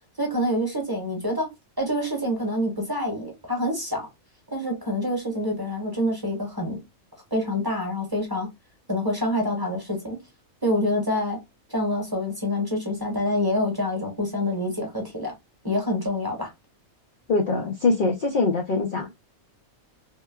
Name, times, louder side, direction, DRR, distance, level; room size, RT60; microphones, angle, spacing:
voice 1, 0.2-1.5 1.8-4.1 4.5-6.8 7.3-8.5 8.9-10.2 10.6-11.4 11.7-15.3 15.6-16.5, left 1 dB, 20° right, 1.0 m, -26 dB
voice 2, 17.3-19.1, left 3 dB, 55° left, 0.6 m, -23 dB
3.7 x 2.2 x 2.2 m
omnidirectional pair, 1.4 m